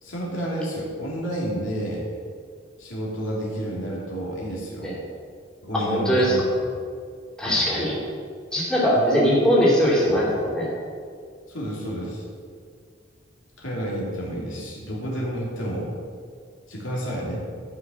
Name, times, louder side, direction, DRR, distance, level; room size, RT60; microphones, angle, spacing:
voice 1, 0.0-2.1 2.8-5.0 5.6-6.4 7.4-7.6 8.9-10.2 11.5-12.2 13.6-15.9 16.7-17.4, right 1 dB, 70° left, -4 dB, 2.8 m, -30 dB
voice 2, 5.7-6.3 7.4-8.0 8.5-10.7, equal, 5° left, -7 dB, 2.9 m, -21 dB
12.5 x 5.9 x 6.3 m, 2.1 s
head